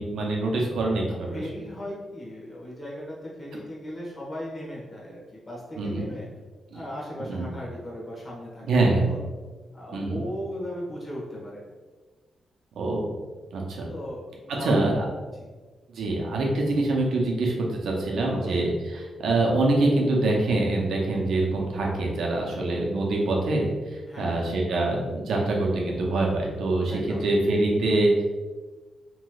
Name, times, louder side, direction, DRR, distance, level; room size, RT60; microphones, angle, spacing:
voice 1, 0.0-1.4 5.8-6.0 6.7-6.8 7.3-7.5 8.7-9.1 9.9-10.2 12.8-13.1 13.5-13.9 14.6-15.1 15.9-23.7 24.2-28.2, right 2 dB, 80° right, -1 dB, 0.6 m, -24 dB
voice 2, 1.3-6.3 6.7-9.3 9.7-11.6 13.9-14.8 15.2-15.5 18.3-18.8 24.1-24.5 26.9-27.3, equal, 30° left, -5 dB, 1.2 m, -37 dB
3.0 x 3.0 x 2.3 m, 1.3 s
cardioid pair, 90°, 0 cm